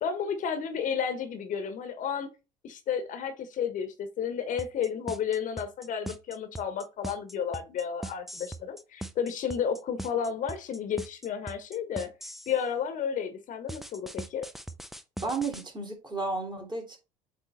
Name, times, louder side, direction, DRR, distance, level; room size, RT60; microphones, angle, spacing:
voice 1, 0.0-2.3 2.6-12.1 12.5-14.5, left 7 dB, 45° left, 1.2 m, -32 dB
sound 1, 4.6-12.6 13.7-15.6, right 1 dB, ahead, 0.7 m, -40 dB
voice 2, 15.2-17.0, right 3 dB, 25° right, 3.2 m, -33 dB
8.1 x 3.3 x 4.3 m
hypercardioid pair, 70°, 18 cm